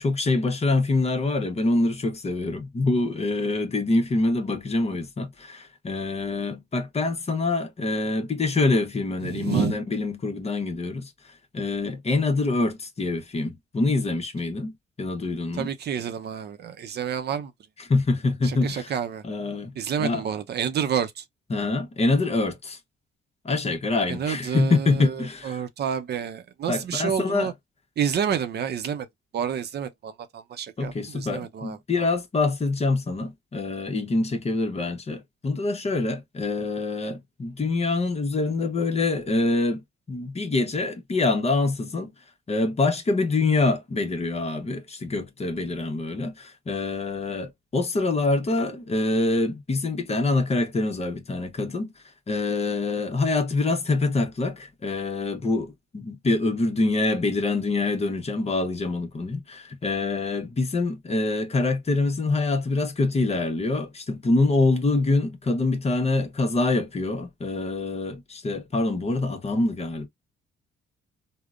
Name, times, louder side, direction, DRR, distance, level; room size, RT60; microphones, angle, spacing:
voice 1, 0.0-11.1 11.5-15.7 17.9-18.9 19.2-19.7 20.0-20.2 21.5-22.8 23.4-25.6 26.7-27.5 30.8-39.8 40.1-42.1 42.5-51.9 52.3-70.1, left 3 dB, 30° left, 0.8 m, -25 dB
voice 2, 9.2-9.8 15.5-17.5 18.4-19.2 19.8-21.2 24.1-27.5 28.0-29.1 29.3-32.1, right 8 dB, 55° right, 0.6 m, -29 dB
3.5 x 2.1 x 2.4 m
cardioid pair, 90°, 20 cm